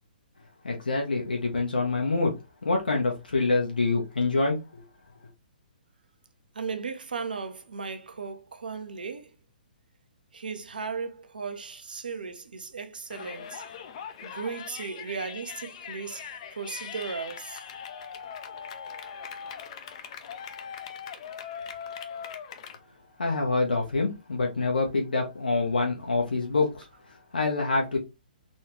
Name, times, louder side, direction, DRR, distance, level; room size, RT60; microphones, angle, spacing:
voice 1, 0.6-2.3 2.6-4.8 23.2-28.0, left 3 dB, 75° left, 1.0 m, -26 dB
voice 2, 6.5-9.4 10.3-13.6 14.2-17.6, right 5 dB, 75° right, 0.7 m, -36 dB
Yell, 13.1-22.8, left 7 dB, 45° left, 0.5 m, -41 dB
4.1 x 2.4 x 3.1 m
figure-of-eight pair, 125°, 5 cm